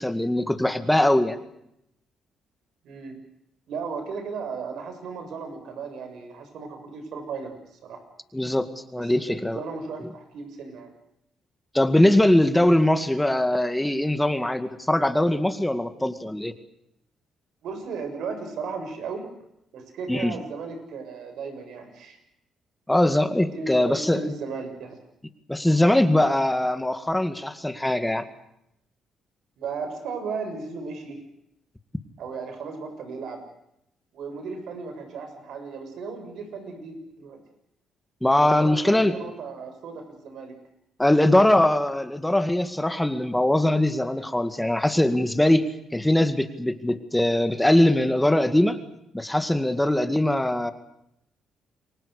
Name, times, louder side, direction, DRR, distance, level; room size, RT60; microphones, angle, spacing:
voice 1, 0.0-1.4 8.3-9.6 11.7-16.5 20.1-20.4 22.9-24.2 25.5-28.3 38.2-39.2 41.0-48.8 49.1-50.7, left 1 dB, 5° left, 9 dB, 2.0 m, -21 dB
voice 2, 2.8-3.2 3.7-7.5 7.8-8.0 9.0-10.9 17.6-19.3 19.7-22.2 23.5-25.0 29.6-31.2 32.2-33.4 34.1-37.4 38.4-40.6, right 5 dB, 75° right, 7 dB, 6.9 m, -35 dB
29.0 x 23.5 x 6.6 m, 0.78 s
cardioid pair, 90°, 0 cm